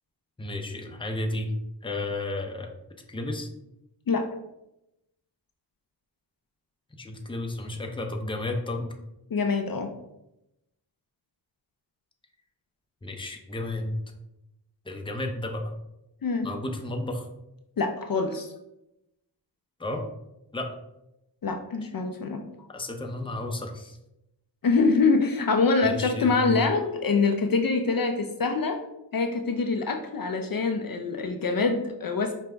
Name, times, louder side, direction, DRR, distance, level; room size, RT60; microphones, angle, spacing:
voice 1, 0.4-1.5 1.8-2.7 3.1-3.5 7.0-8.9 13.0-14.0 14.9-15.7 16.4-17.3 19.8-20.0 20.5-20.7 22.7-24.0 25.8-26.8, left 1 dB, 10° left, 3 dB, 0.6 m, -32 dB
voice 2, 9.3-9.9 16.2-16.5 17.8-18.5 21.4-22.4 24.6-28.8 29.1-32.3, left 4 dB, 50° left, 5 dB, 0.5 m, -25 dB
5.2 x 2.2 x 3.3 m, 0.88 s
cardioid pair, 45°, 44 cm